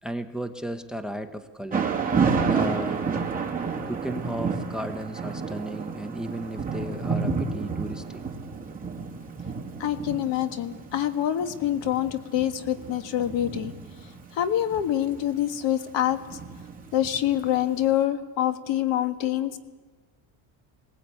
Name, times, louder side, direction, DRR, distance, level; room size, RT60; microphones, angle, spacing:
voice 1, 0.0-1.9 2.5-3.1 3.9-8.2 19.2-19.3, right 1 dB, ahead, 9 dB, 1.0 m, -34 dB
Thunder / Rain, 1.7-17.7, right 5 dB, 20° right, 2.5 m, -30 dB
voice 2, 9.8-13.7 14.3-16.2 16.9-19.6, left 11 dB, 65° left, 9 dB, 1.7 m, -26 dB
21.5 x 19.0 x 8.6 m, 1.3 s
cardioid pair, 120°, 46 cm